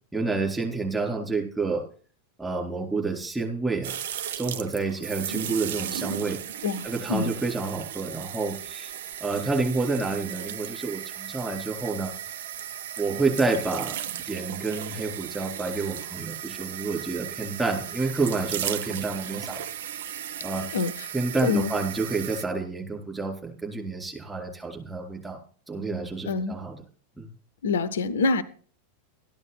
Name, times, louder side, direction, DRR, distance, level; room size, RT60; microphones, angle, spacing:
voice 1, 0.1-1.8 2.4-4.0 4.4-6.4 6.8-8.9 9.2-12.1 13.0-19.6 20.4-20.6 21.1-25.4 25.7-26.8 27.2-27.3, right 3 dB, 10° right, 4.1 m, -29 dB
sound 1, 3.8-22.5, right 10 dB, 55° right, 0.7 m, -36 dB
voice 2, 6.6-7.3 20.7-21.1 21.4-21.7 26.3-26.6 27.6-28.4, left 4 dB, 65° left, 0.7 m, -26 dB
13.5 x 11.0 x 4.2 m
figure-of-eight pair, 90°, 0 cm